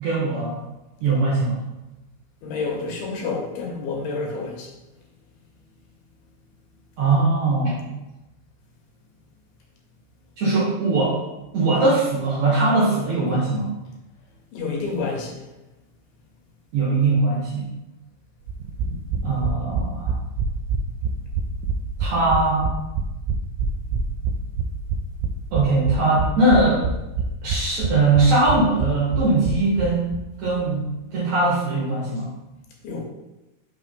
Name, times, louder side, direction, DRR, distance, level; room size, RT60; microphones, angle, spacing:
voice 1, 0.0-0.6 1.0-1.6 7.0-7.8 10.4-11.2 11.5-13.7 16.7-17.7 19.2-20.2 22.0-22.7 25.5-26.8 27.4-30.1 30.4-32.3, right 2 dB, 65° right, -5 dB, 1.9 m, -21 dB
voice 2, 2.4-4.7 14.5-15.4 32.8-33.0, left 4 dB, 75° left, 0 dB, 2.7 m, -29 dB
sound 1, 18.5-30.2 30.5-30.6 30.8-30.9, right 4 dB, 85° right, 2.4 m, -26 dB
5.7 x 3.5 x 5.2 m, 1.0 s
omnidirectional pair, 4.5 m